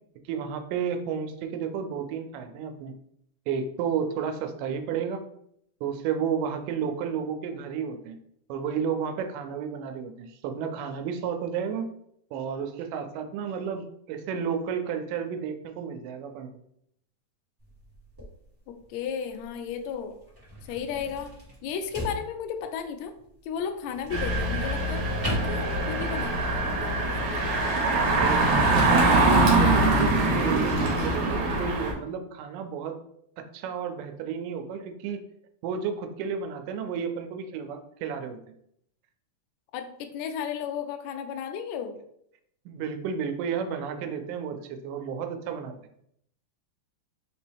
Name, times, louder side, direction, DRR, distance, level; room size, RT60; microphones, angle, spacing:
voice 1, 0.3-2.9 3.5-5.2 5.8-8.2 8.5-11.9 12.3-16.5 28.2-33.0 33.4-35.2 35.6-38.4 42.7-45.7, right 7 dB, 90° right, 7 dB, 2.1 m, -32 dB
sound 1, 17.6-26.3, equal, 30° right, 0.4 m, -40 dB
voice 2, 18.7-20.1 20.7-21.3 21.6-23.1 23.4-27.8 39.7-41.9, left 7 dB, 90° left, 6 dB, 1.5 m, -34 dB
Engine, 24.1-31.9, right 2 dB, 75° right, 2.1 m, -23 dB
4.9 x 3.0 x 3.3 m, 0.73 s
omnidirectional pair, 3.7 m